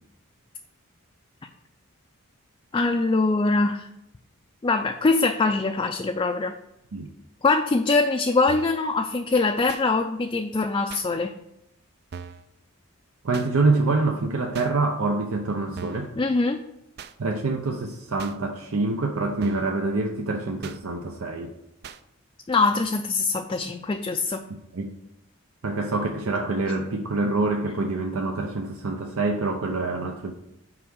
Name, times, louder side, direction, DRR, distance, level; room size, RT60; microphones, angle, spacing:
voice 1, 2.7-3.9 4.6-6.5 7.4-11.3 16.2-16.6 22.5-24.4, left 3 dB, 25° left, 4 dB, 0.3 m, -23 dB
sound 1, 8.5-8.8 9.7-9.9 10.9-11.1 12.1-12.5 13.3-13.5 14.5-14.7 15.8-16.1 17.0-17.1 18.2-18.4 19.4-19.8 20.6-20.8 21.8-22.0, right 6 dB, 50° right, 0.4 m, -40 dB
voice 2, 13.2-16.1 17.2-21.5 24.7-24.9 25.6-30.3, right 3 dB, 85° right, 3 dB, 0.7 m, -26 dB
5.8 x 4.7 x 6.4 m, 0.83 s
head